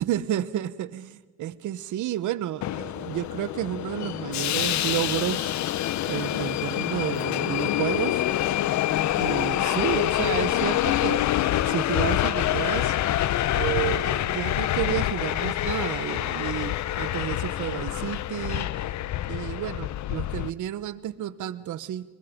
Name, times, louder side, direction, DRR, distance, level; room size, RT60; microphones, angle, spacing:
voice 1, 0.0-5.5 6.0-8.2 9.2-11.3 11.6-12.9 13.5-18.7 19.3-22.0, right 12 dB, 75° right, 15 dB, 1.0 m, -31 dB
Subway metro underground, 2.6-20.5, left 13 dB, 70° left, 0.7 m, -26 dB
22.5 x 22.5 x 5.2 m, 1.3 s
cardioid pair, 90°, 30 cm